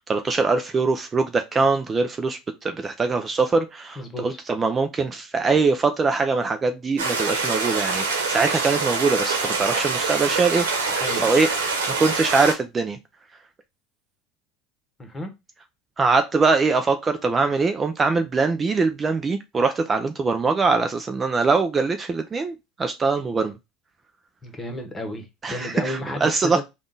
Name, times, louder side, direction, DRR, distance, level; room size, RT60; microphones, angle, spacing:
voice 1, 0.0-10.7 11.2-11.5 12.0-13.0 16.0-23.5 25.4-26.6, right 4 dB, 25° right, 0.5 m, -22 dB
voice 2, 4.0-4.4 10.9-11.3 15.0-15.3 24.4-26.6, left 1 dB, 20° left, 1.3 m, -32 dB
sound 1, 7.0-12.5, right 4 dB, 85° right, 1.0 m, -25 dB
3.6 x 2.4 x 3.8 m
hypercardioid pair, 80°, 0 cm